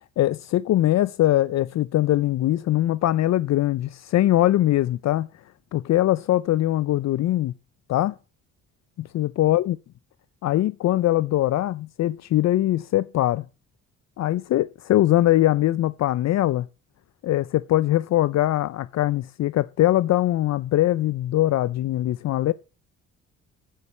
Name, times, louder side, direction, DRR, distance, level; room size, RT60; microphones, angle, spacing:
voice 1, 0.2-5.3 5.7-7.5 7.9-8.1 9.0-9.8 10.4-13.4 14.2-16.7 17.2-22.5, left 14 dB, 60° left, 0.5 m, -22 dB
8.9 x 6.3 x 8.0 m
cardioid pair, 90°, 30 cm